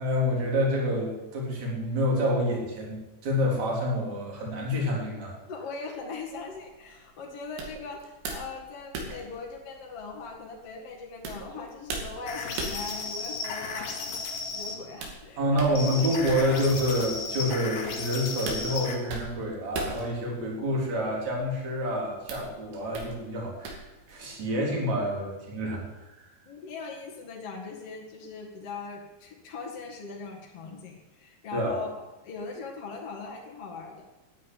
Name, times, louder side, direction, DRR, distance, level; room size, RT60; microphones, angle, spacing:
voice 1, 0.0-5.4 15.4-23.8 24.1-25.8 31.5-31.7, equal, 45° right, -2 dB, 4.9 m, -28 dB
voice 2, 5.5-14.3 14.5-16.0 16.4-16.5 26.5-31.9 32.2-34.1, left 4 dB, 45° left, -2 dB, 2.4 m, -40 dB
sound 1, 6.0-24.4, right 3 dB, 75° right, 4.6 m, -41 dB
sound 2, 12.3-14.8 15.8-19.0, left 4 dB, 75° left, 4.3 m, -34 dB
12.0 x 10.0 x 9.3 m, 1.1 s
omnidirectional pair, 4.9 m